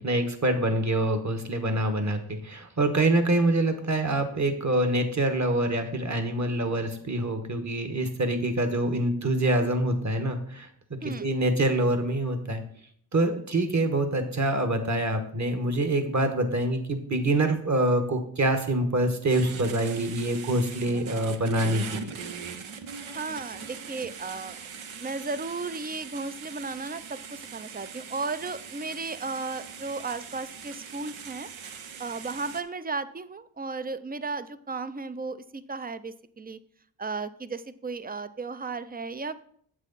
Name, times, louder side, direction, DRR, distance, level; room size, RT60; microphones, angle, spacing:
voice 1, 0.0-10.7 11.0-12.6 13.1-22.1, right 1 dB, 35° right, 7 dB, 1.4 m, -25 dB
voice 2, 11.0-11.3 23.1-24.6 25.0-31.5 32.0-36.6 37.0-39.4, right 3 dB, 20° right, 14 dB, 0.5 m, -35 dB
sound 1, 19.3-32.6, right 6 dB, 75° right, 0.9 m, -41 dB
8.1 x 6.4 x 4.1 m, 0.63 s
cardioid pair, 60°, 49 cm